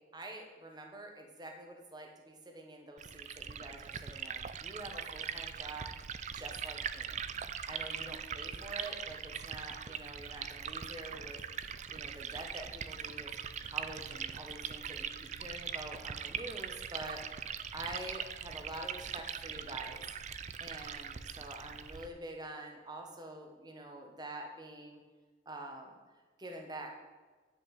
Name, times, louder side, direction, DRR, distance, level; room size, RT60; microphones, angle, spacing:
voice 1, 0.1-5.9 6.3-7.2 7.6-11.4 11.9-13.3 13.7-17.2 17.7-20.0 20.6-25.0 25.4-26.0 26.4-26.9, right 1 dB, 20° right, 2 dB, 1.3 m, -46 dB
Liquid, 3.0-22.1, right 7 dB, 35° right, 0.4 m, -41 dB
10.5 x 5.5 x 8.3 m, 1.3 s
head